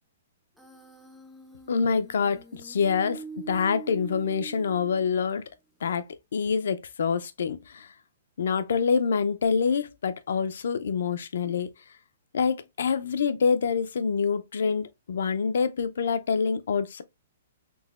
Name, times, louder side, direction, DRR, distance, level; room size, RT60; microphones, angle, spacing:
Human voice, 0.6-5.5, right 4 dB, ahead, 0.4 m, -44 dB
voice 1, 1.7-5.4 5.8-7.9 8.4-11.7 12.3-17.0, left 6 dB, 75° left, 0.5 m, -26 dB
3.9 x 2.7 x 2.3 m
hypercardioid pair, 170°, 0 cm